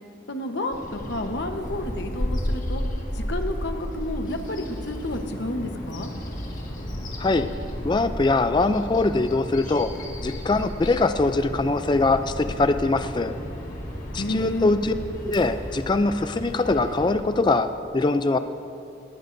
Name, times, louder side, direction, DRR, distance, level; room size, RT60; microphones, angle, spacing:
voice 1, 0.3-2.8 3.1-6.1 14.2-14.8, left 1 dB, 60° left, 5 dB, 1.0 m, -30 dB
Bird vocalization bird call bird song, 0.7-17.1, equal, 40° left, 1.8 m, -33 dB
voice 2, 7.8-9.9 10.2-13.3 14.1-14.9 15.2-18.4, left 3 dB, 25° left, 10 dB, 0.3 m, -22 dB
19.5 x 17.0 x 2.6 m, 2.7 s
head